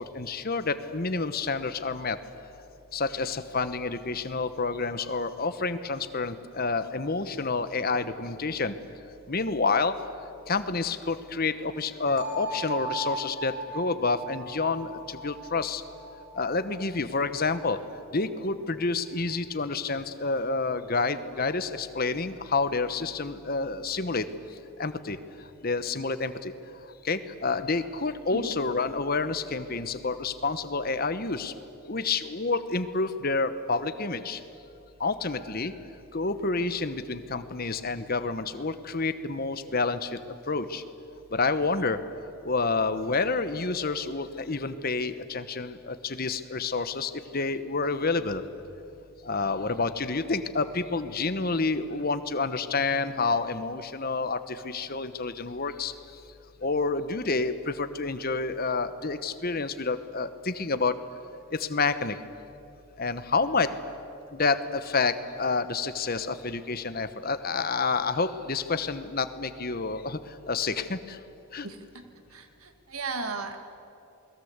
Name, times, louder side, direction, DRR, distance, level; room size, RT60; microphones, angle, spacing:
voice 1, 0.0-2.2 2.9-8.7 9.3-10.0 10.5-15.8 16.3-17.8 18.1-24.3 24.8-25.2 25.6-26.5 27.0-31.5 31.9-34.4 35.0-35.7 36.1-40.8 41.3-42.0 42.4-48.4 49.2-55.9 56.6-60.9 61.5-62.2 63.0-63.7 64.3-70.2 70.5-71.2 71.5-71.7, left 4 dB, 45° left, 11 dB, 1.1 m, -29 dB
sound 1, 12.2-18.0, right 2 dB, 40° right, 5.1 m, -38 dB
voice 2, 71.6-72.0 72.3-73.6, right 3 dB, 75° right, 6 dB, 2.3 m, -36 dB
28.5 x 21.0 x 8.2 m, 2.7 s
head